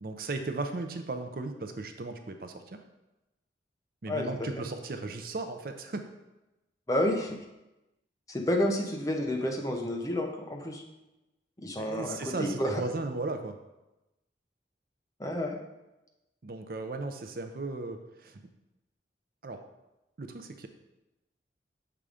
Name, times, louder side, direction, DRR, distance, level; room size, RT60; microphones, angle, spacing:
voice 1, 0.0-2.8 4.0-6.0 11.8-13.6 16.4-18.4 19.4-19.6 20.2-20.7, right 3 dB, 55° right, 6 dB, 0.5 m, -36 dB
voice 2, 4.1-4.5 6.9-7.4 8.3-10.8 11.6-12.8 15.2-15.6, left 1 dB, 20° left, 1 dB, 0.7 m, -30 dB
6.8 x 3.7 x 4.9 m, 0.98 s
head